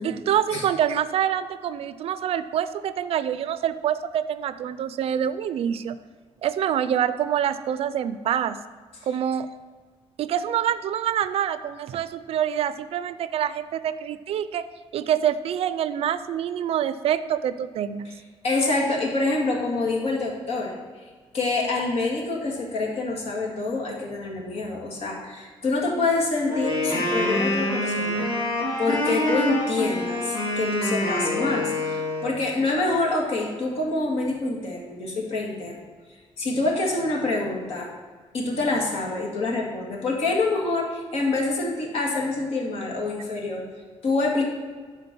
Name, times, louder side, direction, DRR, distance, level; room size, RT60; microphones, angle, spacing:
voice 1, 0.0-6.0 6.4-8.6 9.1-9.5 10.2-14.7 14.9-18.1, right 9 dB, 65° right, 13 dB, 0.4 m, -26 dB
voice 2, 18.4-20.7 21.3-28.3 28.8-35.8 36.4-37.9 38.3-43.6 44.0-44.4, left 3 dB, 65° left, -1 dB, 2.0 m, -26 dB
Wind instrument woodwind instrument, 26.5-32.4, left 1 dB, 45° left, 2.2 m, -26 dB
10.5 x 4.5 x 6.0 m, 1.5 s
cardioid pair, 150°, 11 cm